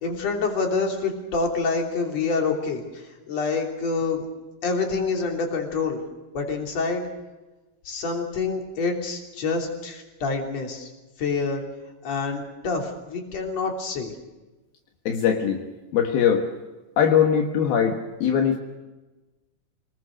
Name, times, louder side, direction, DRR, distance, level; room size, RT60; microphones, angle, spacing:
voice 1, 0.0-4.3 4.6-6.0 6.3-7.0 7.9-10.9 11.2-11.6 12.0-14.1, left 4 dB, 45° left, 2 dB, 4.1 m, -27 dB
voice 2, 15.1-15.6 15.9-16.5 17.0-18.6, left 8 dB, 75° left, 3 dB, 3.3 m, -21 dB
27.0 x 20.0 x 6.6 m, 1.1 s
omnidirectional pair, 4.5 m